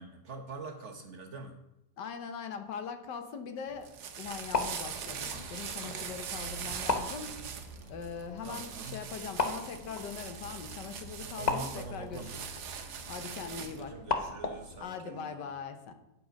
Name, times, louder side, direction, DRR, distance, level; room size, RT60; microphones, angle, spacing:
voice 1, 0.0-1.5 8.4-9.0 11.3-12.3 13.3-15.5, right 3 dB, 50° right, 3 dB, 1.1 m, -44 dB
voice 2, 2.0-7.4 7.9-12.3 13.1-14.0 14.8-15.9, left 6 dB, 75° left, 8 dB, 1.5 m, -41 dB
sound 1, 3.7-13.9, right 7 dB, 65° right, 1.4 m, -42 dB
sound 2, 4.2-14.8, left 3 dB, 45° left, 0.5 m, -38 dB
9.6 x 7.7 x 5.1 m, 0.88 s
omnidirectional pair, 1.9 m